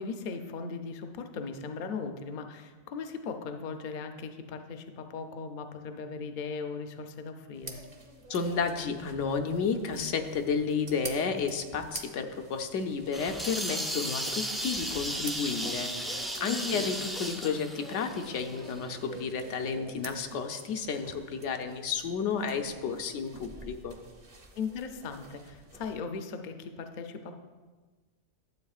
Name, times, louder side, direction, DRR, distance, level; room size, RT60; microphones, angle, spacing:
voice 1, 0.0-7.8 16.5-16.9 24.6-27.4, left 5 dB, 50° left, 6 dB, 0.6 m, -38 dB
sound 1, 7.5-26.0, right 2 dB, 30° right, 0.9 m, -48 dB
voice 2, 8.3-24.0, left 5 dB, 85° left, 6 dB, 1.0 m, -32 dB
sound 2, 13.1-18.9, equal, ahead, 0.3 m, -35 dB
12.0 x 7.7 x 2.4 m, 1.3 s
omnidirectional pair, 1.2 m